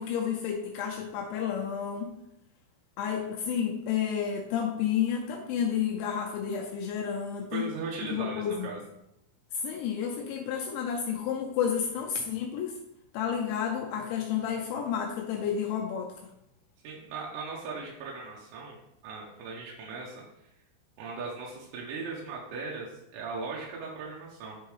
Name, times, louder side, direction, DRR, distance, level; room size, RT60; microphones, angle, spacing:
voice 1, 0.0-2.1 3.0-7.7 8.1-8.7 9.5-12.8 13.1-16.1, left 8 dB, 90° left, 0 dB, 2.7 m, -31 dB
voice 2, 7.5-8.8 16.8-18.8 19.0-20.2 21.0-24.6, right 4 dB, 80° right, -4 dB, 3.7 m, -38 dB
10.5 x 4.5 x 3.3 m, 0.83 s
omnidirectional pair, 6.0 m